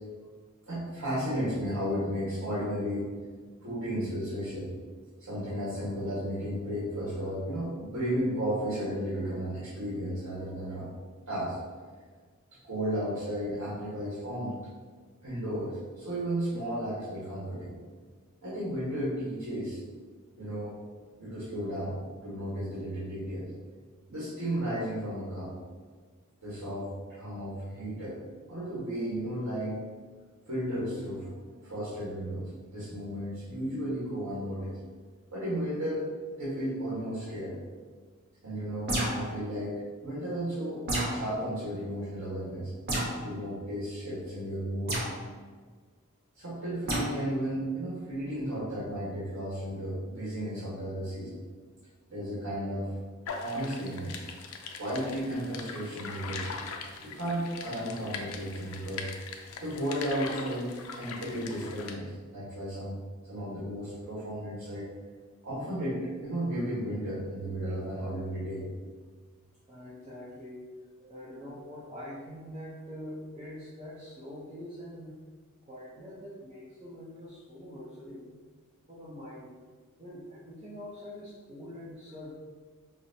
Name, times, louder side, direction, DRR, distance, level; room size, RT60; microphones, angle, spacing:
voice 1, 0.7-3.1 3.6-4.7 5.3-10.9 11.3-11.6 12.6-14.5 15.2-17.7 18.4-19.8 20.4-20.7 21.2-23.5 24.1-25.5 26.4-28.2 28.5-29.8 30.5-34.8 35.3-36.1 36.4-37.6 38.4-40.8 41.1-42.7 43.2-45.0 46.3-51.4 52.1-52.9 53.4-54.1 54.8-56.6 57.0-59.1 59.6-63.0 63.3-64.9 65.4-68.6 69.9-70.0 71.2-71.5, equal, 85° right, -10 dB, 1.3 m, -34 dB
sound 1, 38.9-39.3 40.9-41.2 42.9-43.2 44.9-45.1 46.9-47.1, right 1 dB, 50° right, 1.0 m, -29 dB
sound 2, 53.3-62.0, left 5 dB, 75° left, 0.4 m, -41 dB
voice 2, 69.7-70.6 71.1-75.1 75.7-78.3 78.9-79.5 80.0-82.3, left 1 dB, 25° right, -10 dB, 0.6 m, -44 dB
5.5 x 2.0 x 2.7 m, 1.5 s
head